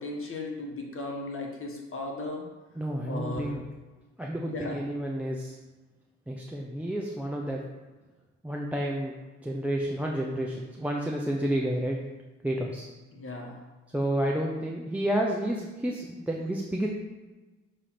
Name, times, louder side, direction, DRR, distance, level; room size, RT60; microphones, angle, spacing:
voice 1, 0.0-2.4 3.1-3.6 4.4-4.8 13.1-13.6, left 2 dB, 45° left, 0 dB, 1.6 m, -36 dB
voice 2, 2.8-3.6 4.2-5.6 6.3-7.6 8.4-9.1 9.4-12.0 12.4-12.9 13.9-16.9, right 1 dB, 5° right, -1 dB, 0.7 m, -30 dB
6.7 x 3.3 x 5.8 m, 1.2 s
cardioid pair, 90°, 30 cm